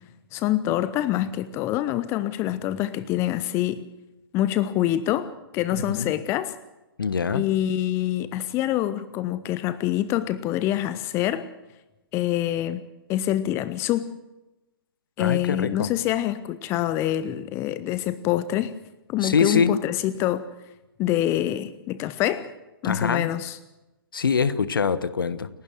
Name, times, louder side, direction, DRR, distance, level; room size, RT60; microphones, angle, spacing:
voice 1, 0.3-3.8 4.3-6.5 7.3-11.5 12.1-12.8 13.1-14.1 15.2-18.7 19.1-20.4 21.0-22.5 22.8-23.6, left 13 dB, 20° left, 16 dB, 0.7 m, -25 dB
voice 2, 7.0-7.4 15.2-15.9 19.2-19.8 22.8-23.3 24.1-25.5, left 6 dB, 65° left, 16 dB, 1.2 m, -24 dB
29.5 x 12.0 x 7.7 m, 1.0 s
figure-of-eight pair, 125°, 13 cm